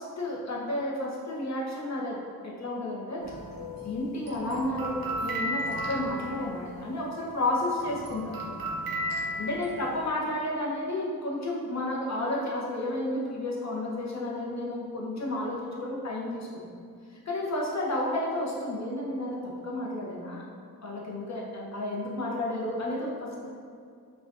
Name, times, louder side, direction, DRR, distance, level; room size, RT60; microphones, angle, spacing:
voice 1, 0.0-3.3 3.8-8.4 9.4-16.7 17.3-20.4 20.8-23.5, left 1 dB, 45° left, -4 dB, 0.8 m, -32 dB
sound 1, 3.2-7.2 7.6-10.1, equal, 65° right, 0.8 m, -35 dB
5.5 x 2.5 x 2.5 m, 2.3 s
wide cardioid pair, 80°, 37 cm